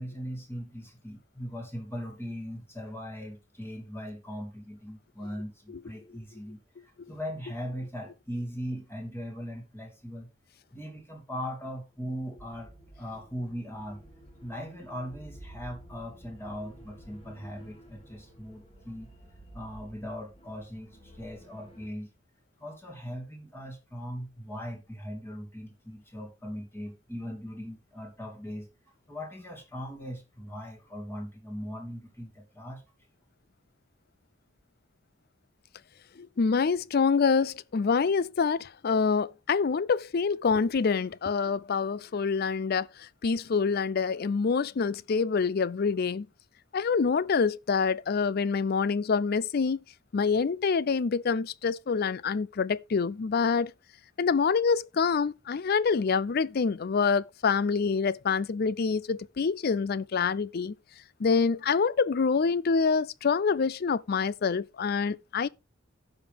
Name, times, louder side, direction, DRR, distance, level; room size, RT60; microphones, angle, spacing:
voice 1, 0.0-10.3 10.7-14.0 14.4-19.1 19.5-22.1 22.6-28.7 29.1-32.8, equal, 10° left, 2.6 m, -39 dB
sound 1, 12.1-21.9, right 1 dB, 30° left, 2.9 m, -51 dB
voice 2, 36.2-46.3 46.7-49.8 50.1-53.7 54.2-60.7 61.2-65.5, left 5 dB, 50° left, 0.4 m, -26 dB
15.5 x 5.3 x 3.4 m
head